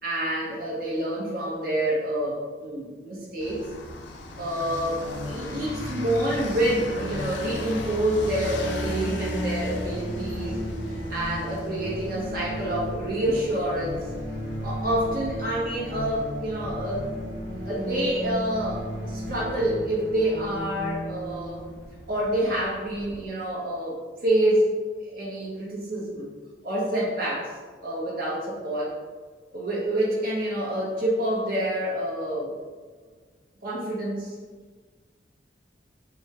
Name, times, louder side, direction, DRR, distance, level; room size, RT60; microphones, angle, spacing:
voice 1, 0.0-3.6 4.4-10.6 11.1-14.0 14.6-17.1 17.6-21.6 22.1-23.9 24.2-24.7 25.0-26.3 26.6-27.5 27.8-28.9 29.5-32.5 33.6-34.3, right 1 dB, 55° right, -6 dB, 1.2 m, -27 dB
sound 1, 3.4-23.2, left 1 dB, 85° left, 0.5 m, -39 dB
sound 2, 4.3-23.0, equal, 85° right, 1.1 m, -35 dB
5.3 x 2.3 x 3.1 m, 1.5 s
head